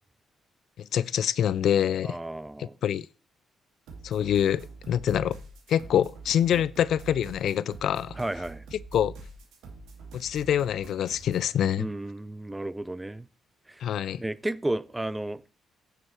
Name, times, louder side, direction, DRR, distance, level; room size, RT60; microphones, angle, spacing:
voice 1, 0.8-2.2 2.6-3.1 4.0-5.4 5.7-8.2 8.9-9.1 10.1-11.9 13.8-14.2, left 10 dB, 70° left, 0.4 m, -25 dB
voice 2, 2.0-2.8 6.5-6.6 8.2-8.6 11.8-13.3 13.7-13.9 14.2-15.4, right 1 dB, 10° right, 0.5 m, -33 dB
sound 1, 3.9-11.5, right 3 dB, 85° right, 2.5 m, -45 dB
9.7 x 6.6 x 4.5 m
cardioid pair, 90°, 0 cm